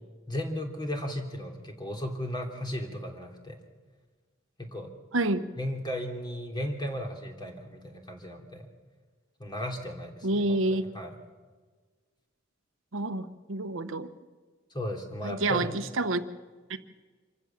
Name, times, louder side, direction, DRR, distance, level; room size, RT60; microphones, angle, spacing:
voice 1, 0.3-3.6 4.6-4.9 5.6-8.7 9.4-11.2 14.7-15.7, equal, 20° left, 3 dB, 3.0 m, -35 dB
voice 2, 5.1-5.5 10.2-10.8 12.9-14.1 15.2-16.2, right 2 dB, 70° right, 10 dB, 1.1 m, -28 dB
26.0 x 15.0 x 7.3 m, 1.4 s
head